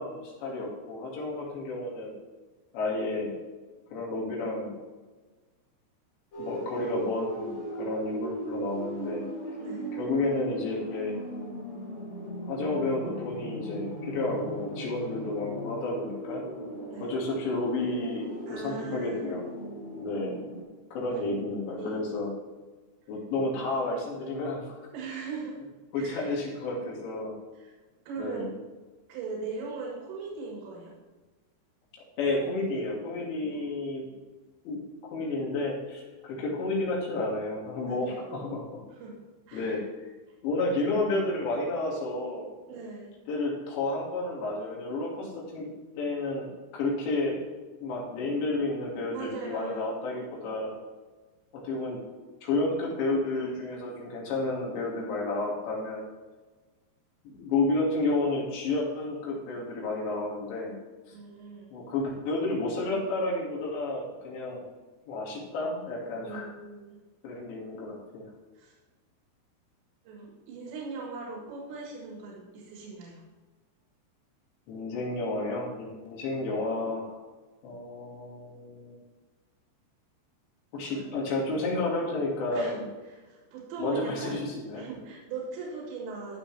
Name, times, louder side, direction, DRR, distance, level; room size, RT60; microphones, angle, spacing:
voice 1, 0.0-2.1 2.7-3.3 3.9-4.7 6.4-9.3 9.9-11.2 12.5-16.4 17.0-19.4 20.0-20.4 20.9-22.3 23.1-24.7 25.9-27.4 28.2-28.5 32.2-34.1 34.7-34.8 35.1-38.8 39.5-39.8 40.4-42.5 43.3-45.7 46.0-46.5 46.7-47.4 47.8-50.7 51.6-52.0 52.4-56.0 57.2-60.8 61.7-64.6 65.1-66.5 67.2-68.2 74.7-77.2 77.6-79.0 80.7-82.9 83.8-84.9, left 2 dB, 80° left, -3 dB, 4.4 m, -31 dB
sound 1, 6.3-20.6, right 1 dB, 35° left, 3.6 m, -38 dB
voice 2, 9.6-9.9 16.9-17.1 18.5-19.3 21.1-21.2 21.8-22.0 24.9-25.6 25.9-26.3 27.5-27.7 28.1-28.5 29.1-30.9 33.4-34.2 37.9-38.3 38.9-39.2 39.5-39.8 42.7-43.1 49.1-49.8 61.1-61.7 66.2-67.0 68.6-68.8 70.1-73.2 80.9-81.1 82.5-84.4 84.7-86.4, right 4 dB, 85° right, -2 dB, 3.9 m, -40 dB
14.0 x 6.9 x 3.3 m, 1.3 s
omnidirectional pair, 5.0 m